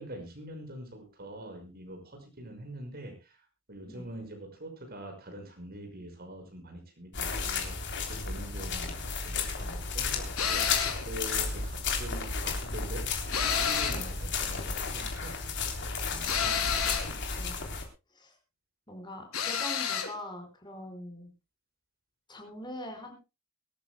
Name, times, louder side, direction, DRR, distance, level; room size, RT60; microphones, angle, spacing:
voice 1, 0.0-3.4 3.7-15.4 16.1-16.3, right 1 dB, 45° right, 4 dB, 5.8 m, -44 dB
sound 1, 7.1-17.8, left 4 dB, 55° left, 3.4 m, -33 dB
sound 2, 10.4-11.1 13.3-14.1 16.3-17.1 19.3-20.1, left 7 dB, 80° left, 3.3 m, -29 dB
voice 2, 16.4-17.6 18.1-18.4 18.9-21.3 22.3-23.1, left 1 dB, 20° left, 5 dB, 4.9 m, -43 dB
23.5 x 13.5 x 2.3 m, 0.28 s
head